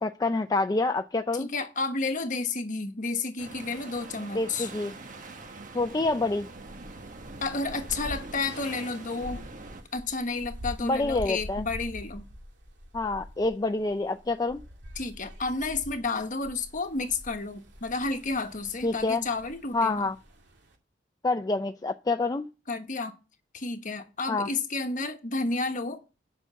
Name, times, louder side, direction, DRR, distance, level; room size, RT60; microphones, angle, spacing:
voice 1, 0.0-1.5 4.3-4.9 5.7-6.5 10.8-11.6 12.9-14.6 18.8-19.2 19.7-20.1 21.2-22.5 24.3-24.5, left 3 dB, 20° left, 0.4 m, -27 dB
voice 2, 1.3-4.7 7.4-9.5 9.9-12.2 15.0-20.1 22.7-23.2 23.5-26.0, left 3 dB, 45° left, 1.2 m, -31 dB
sound 1, 3.4-9.8, right 3 dB, 45° right, 1.3 m, -44 dB
sound 2, 5.4-20.7, equal, 80° right, 2.4 m, -45 dB
9.6 x 5.9 x 6.9 m
head